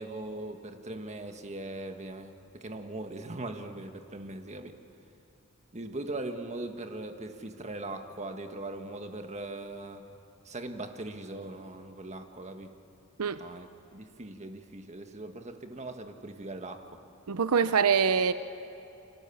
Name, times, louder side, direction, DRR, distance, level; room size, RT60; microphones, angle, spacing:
voice 1, 0.0-4.8 5.7-10.1 10.5-12.7 13.4-16.8, right 2 dB, 30° right, 6 dB, 1.6 m, -40 dB
voice 2, 17.3-18.3, right 6 dB, 85° right, 12 dB, 0.7 m, -24 dB
29.0 x 25.0 x 7.2 m, 2.7 s
head